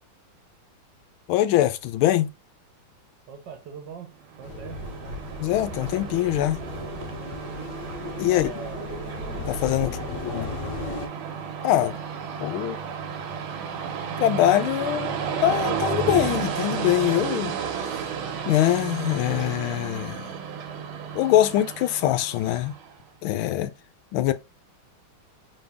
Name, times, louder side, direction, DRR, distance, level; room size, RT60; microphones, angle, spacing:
voice 1, 1.3-2.3 5.4-6.6 8.2-8.5 9.5-10.0 10.3-10.5 11.6-12.0 12.4-12.8 14.2-15.1 15.4-17.5 18.4-20.3 21.1-22.7 23.2-23.7 24.1-24.3, left 13 dB, 85° left, 1.4 m, -23 dB
voice 2, 3.3-5.2 7.2-7.5 8.2-9.0 9.8-10.6, right 7 dB, 65° right, 1.5 m, -42 dB
Train, 4.3-22.9, right 6 dB, 90° right, 1.7 m, -33 dB
sound 1, 4.4-11.1, left 3 dB, 60° left, 1.5 m, -36 dB
4.2 x 3.4 x 3.5 m
omnidirectional pair, 2.2 m